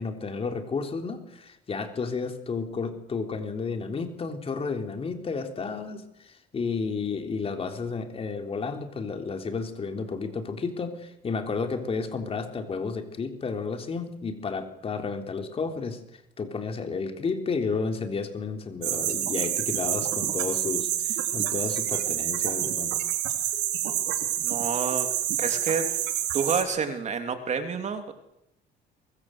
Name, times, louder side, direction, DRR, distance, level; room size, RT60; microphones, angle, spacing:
voice 1, 0.0-16.0 16.4-23.0, left 4 dB, 35° left, 5 dB, 3.7 m, -32 dB
sound 1, 18.8-26.6, right 12 dB, 85° right, 3.7 m, -28 dB
voice 2, 24.4-25.1 25.4-25.9 26.3-28.1, right 6 dB, 45° right, 7 dB, 3.3 m, -28 dB
23.5 x 22.0 x 8.1 m, 0.81 s
cardioid pair, 110°, 17 cm